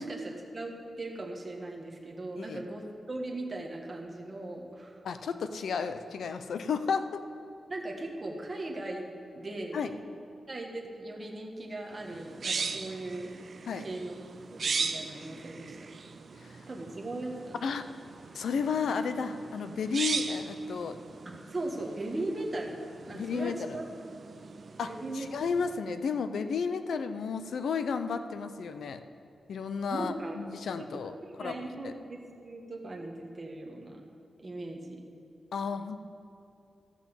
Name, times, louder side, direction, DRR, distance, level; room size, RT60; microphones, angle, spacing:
voice 1, 0.0-5.0 7.7-9.9 10.5-13.5 13.8-14.2 14.5-15.9 16.7-17.6 21.2-23.9 24.8-25.3 29.9-30.4 30.8-30.9 31.2-34.0 34.4-35.0, right 2 dB, 25° right, 0 dB, 1.4 m, -38 dB
voice 2, 5.0-7.2 9.7-9.9 13.7-13.8 16.4-16.6 17.6-17.9 18.3-21.0 23.1-23.8 24.8-29.0 29.5-31.9 35.5-36.0, left 5 dB, 80° left, 10 dB, 0.6 m, -33 dB
sound 1, 12.0-25.8, right 5 dB, 45° right, 0.5 m, -39 dB
14.0 x 6.1 x 7.1 m, 2.7 s
wide cardioid pair, 165°, 0 cm